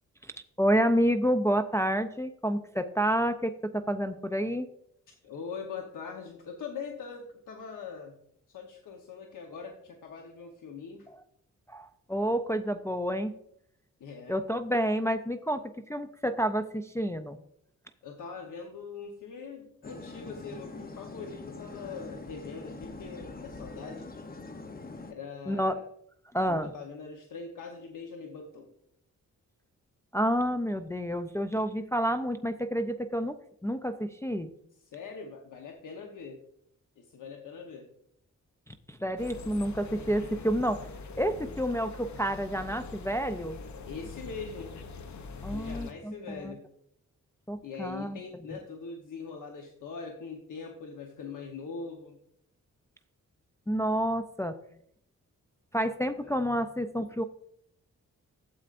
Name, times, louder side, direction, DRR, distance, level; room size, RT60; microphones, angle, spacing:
voice 1, 0.6-4.7 11.7-13.3 14.3-15.6 15.9-17.4 25.5-25.7 26.3-26.7 30.1-33.4 33.6-34.5 38.9-40.8 41.2-43.6 45.4-46.5 47.5-48.2 53.7-54.6 55.7-57.2, equal, 10° left, 7 dB, 0.4 m, -29 dB
voice 2, 5.2-8.2 8.5-11.1 14.0-14.4 18.0-24.1 25.1-25.8 26.5-28.7 34.8-36.4 37.0-37.9 43.9-44.8 45.5-46.6 47.6-52.2 56.0-56.4, left 5 dB, 85° left, 2 dB, 1.0 m, -42 dB
sound 1, 19.8-25.1, left 3 dB, 30° left, 0.8 m, -43 dB
sound 2, 39.2-45.9, left 4 dB, 65° left, 0.8 m, -43 dB
12.0 x 7.7 x 2.5 m, 0.72 s
wide cardioid pair, 110°, 31 cm